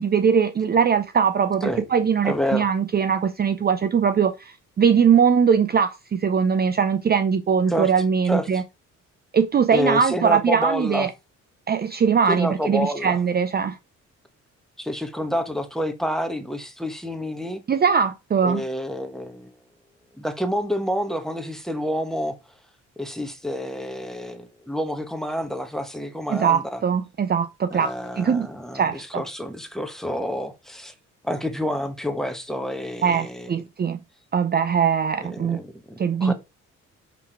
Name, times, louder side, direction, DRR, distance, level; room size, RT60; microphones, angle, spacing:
voice 1, 0.0-8.6 9.3-11.1 11.7-13.8 17.7-18.6 26.3-28.5 28.7-29.2 33.0-34.0 34.3-35.6 36.0-36.3, right 6 dB, 30° right, 0.6 m, -21 dB
voice 2, 2.2-2.7 7.7-7.9 8.2-8.6 9.7-11.1 12.3-13.2 14.8-17.6 18.4-19.5 20.2-22.4 23.0-26.8 27.7-30.9 31.2-33.5 35.2-36.3, equal, ahead, 1.2 m, -28 dB
6.0 x 3.5 x 4.6 m
cardioid pair, 90°, 30 cm